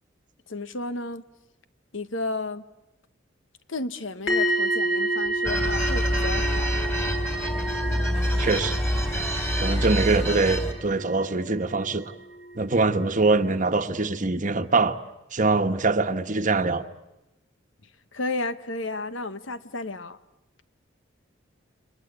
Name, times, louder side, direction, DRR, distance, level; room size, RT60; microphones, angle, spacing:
voice 1, 0.5-1.2 1.9-2.6 3.7-6.8 18.1-20.2, left 2 dB, 80° left, 1.3 m, -32 dB
sound 1, 4.3-12.1 12.4-12.7, right 1 dB, 60° left, 6.5 m, -30 dB
sound 2, 5.4-10.7, equal, 15° left, 3.5 m, -26 dB
voice 2, 8.4-8.8 9.6-12.1 12.5-15.0 15.3-16.8, right 3 dB, 40° right, 1.2 m, -23 dB
30.0 x 24.0 x 8.2 m
head